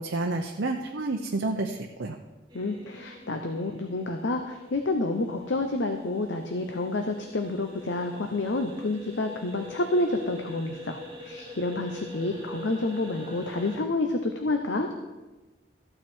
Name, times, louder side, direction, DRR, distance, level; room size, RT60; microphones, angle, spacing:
voice 1, 0.0-2.2, right 2 dB, 85° right, 2 dB, 0.7 m, -30 dB
voice 2, 2.5-14.9, left 2 dB, 85° left, 5 dB, 0.9 m, -29 dB
sound 1, 2.5-13.8, equal, 25° right, 2.2 m, -45 dB
14.0 x 9.0 x 4.5 m, 1.1 s
head